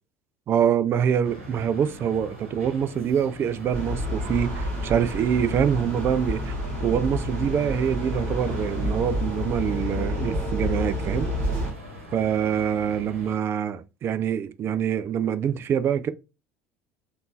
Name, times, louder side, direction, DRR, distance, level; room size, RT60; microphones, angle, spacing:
voice 1, 0.5-6.5 6.8-11.3 12.1-16.1, right 8 dB, 35° right, 0.3 m, -25 dB
sound 1, 1.2-13.4, left 1 dB, 80° right, 1.0 m, -42 dB
sound 2, 3.7-11.7, equal, 55° right, 1.4 m, -29 dB
3.5 x 2.5 x 2.6 m
figure-of-eight pair, 65°, 7 cm